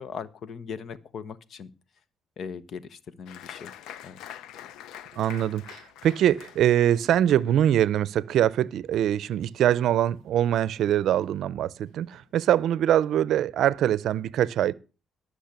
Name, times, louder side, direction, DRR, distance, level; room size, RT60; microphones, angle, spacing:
voice 1, 0.0-1.7 2.4-3.7 4.0-4.2, left 6 dB, 60° left, 1.0 m, -39 dB
Applause, 3.3-10.3 10.6-11.3 11.7-11.8 12.1-12.6, left 11 dB, 90° left, 0.6 m, -46 dB
voice 2, 5.2-14.7, right 11 dB, 75° right, 0.5 m, -23 dB
13.5 x 6.4 x 6.7 m
cardioid pair, 90°, 0 cm